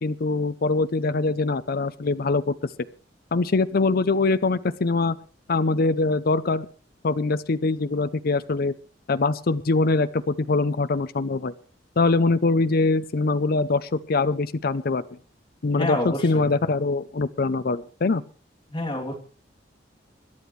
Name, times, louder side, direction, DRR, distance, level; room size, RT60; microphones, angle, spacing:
voice 1, 0.0-2.5 3.3-5.2 5.5-6.7 7.0-8.7 9.1-11.5 12.0-15.0 15.6-18.2, left 3 dB, 55° left, 13 dB, 0.6 m, -23 dB
voice 2, 15.7-16.5 18.7-19.1, left 1 dB, 30° left, 0 dB, 2.9 m, -28 dB
26.0 x 11.0 x 3.2 m, 0.39 s
head